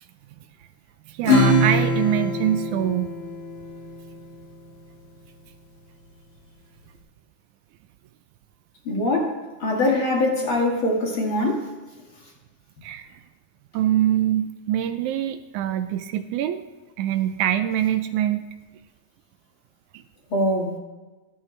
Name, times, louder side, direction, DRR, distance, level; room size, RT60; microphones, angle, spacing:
voice 1, 1.1-3.1 12.8-13.1 13.7-16.6 17.0-18.4, right 11 dB, 80° right, 10 dB, 1.9 m, -24 dB
Acoustic guitar / Strum, 1.2-4.2, left 1 dB, 75° left, 3.5 m, -22 dB
voice 2, 8.9-9.3 9.6-11.6 20.3-20.8, left 1 dB, 45° left, -1 dB, 2.4 m, -22 dB
13.0 x 12.5 x 3.2 m, 1.3 s
omnidirectional pair, 3.6 m